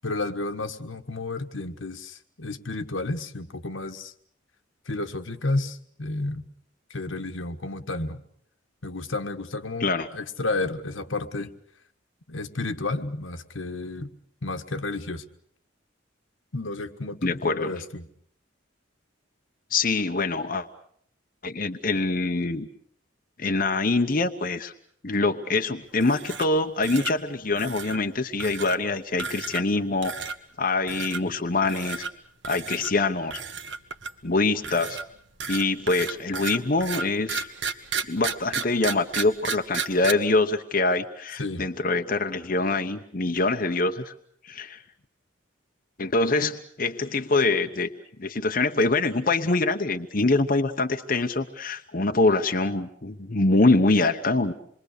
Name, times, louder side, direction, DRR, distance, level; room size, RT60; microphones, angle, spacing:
voice 1, 0.0-4.1 4.8-6.5 6.9-8.2 8.8-11.5 12.3-14.1 14.4-15.2 16.5-18.1 41.4-41.7, left 2 dB, 80° left, 7 dB, 1.6 m, -31 dB
voice 2, 17.2-17.7 19.7-20.7 21.4-22.7 23.4-24.7 25.0-30.2 30.6-32.0 32.5-33.4 34.2-35.0 35.5-37.5 38.1-44.1 44.4-44.8 46.0-47.9 48.2-54.5, left 3 dB, 45° left, 5 dB, 1.0 m, -24 dB
sound 1, 26.0-26.6 26.8-27.1 27.6-28.0 28.4-28.8 29.2-29.7 30.0-30.4 30.9-31.2 31.6-32.1 32.4-32.9 33.3-34.2 34.6-40.1, right 5 dB, 70° right, 1.6 m, -32 dB
27.0 x 22.5 x 6.7 m, 0.65 s
head